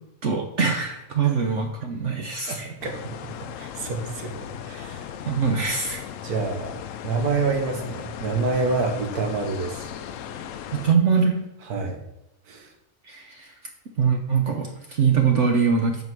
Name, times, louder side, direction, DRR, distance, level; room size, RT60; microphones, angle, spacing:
voice 1, 0.2-2.7 5.2-6.0 10.7-11.5 13.0-13.5 14.0-16.0, right 6 dB, 55° right, 4 dB, 1.1 m, -23 dB
voice 2, 2.5-3.1 3.6-5.1 6.2-6.8 7.0-9.9 11.7-12.0 12.5-12.7, right 4 dB, 80° right, 4 dB, 1.7 m, -27 dB
sound 1, 2.8-11.0, left 9 dB, 70° left, 0.9 m, -37 dB
8.1 x 5.1 x 6.1 m, 0.89 s
omnidirectional pair, 1.6 m